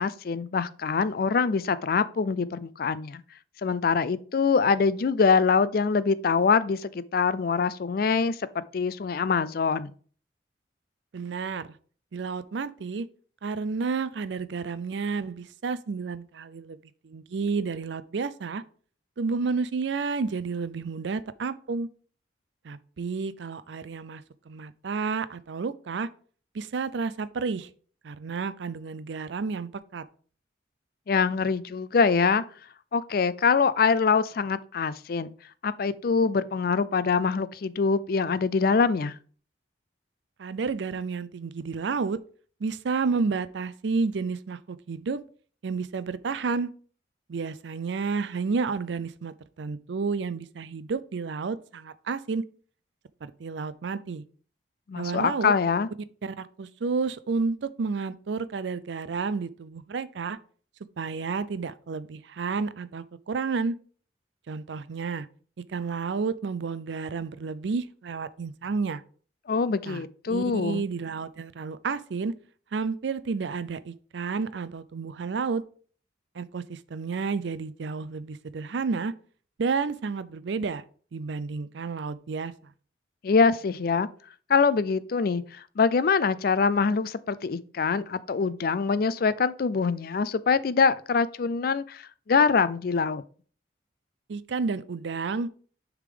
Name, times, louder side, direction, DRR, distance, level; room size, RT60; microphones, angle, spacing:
voice 1, 0.0-3.2 3.6-9.9 31.1-32.4 32.9-35.3 35.6-39.1 54.9-55.9 69.5-70.8 83.2-84.1 84.5-85.4 85.8-92.0 92.3-93.2, left 5 dB, 50° left, 0.4 m, -24 dB
voice 2, 11.1-11.7 12.1-13.1 13.4-16.8 17.0-18.6 19.2-21.9 22.6-26.1 26.5-27.7 28.0-30.0 40.4-42.2 42.6-45.2 45.6-46.7 47.3-52.4 53.2-54.2 55.0-55.5 56.2-60.4 61.0-63.8 64.5-65.3 65.7-69.0 69.8-72.3 72.7-75.6 76.3-79.1 79.6-80.8 81.1-82.5 94.3-95.5, right 4 dB, 70° right, 0.4 m, -31 dB
6.7 x 3.7 x 5.0 m
head